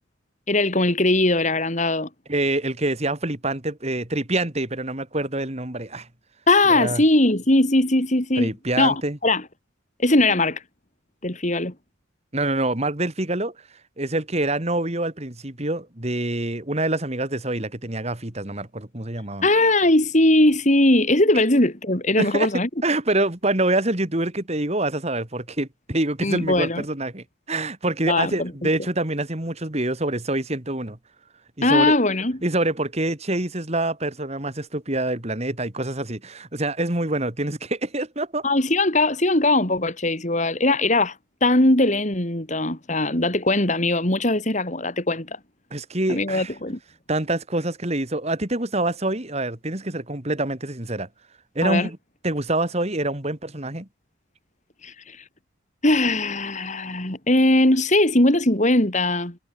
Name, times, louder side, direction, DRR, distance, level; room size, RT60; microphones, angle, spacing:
voice 1, 0.5-2.1 6.5-8.5 8.8-9.4 10.0-10.6 11.2-11.7 19.4-22.7 26.2-26.8 28.1-28.5 31.6-32.4 38.4-41.1 41.4-45.4 46.1-46.8 51.6-51.9 54.8-55.2 55.8-59.4, left 2 dB, 35° left, 2.7 m, -20 dB
voice 2, 2.3-6.1 6.7-7.0 8.4-9.2 12.3-13.5 14.0-19.5 22.2-22.5 22.8-31.0 31.6-31.9 32.4-38.4 45.7-46.5 47.1-51.1 51.6-52.0 52.2-53.9, right 2 dB, 30° right, 2.4 m, -26 dB
head